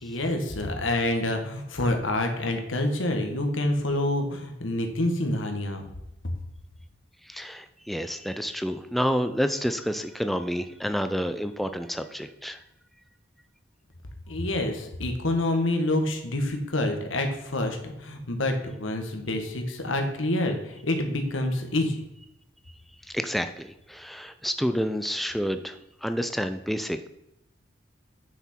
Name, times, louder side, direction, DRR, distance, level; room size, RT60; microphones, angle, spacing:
voice 1, 0.0-5.8 14.3-22.0, left 1 dB, 85° left, 5 dB, 1.5 m, -27 dB
voice 2, 7.2-12.6 23.1-27.1, equal, ahead, 9 dB, 0.4 m, -29 dB
9.2 x 6.1 x 4.4 m, 0.86 s
head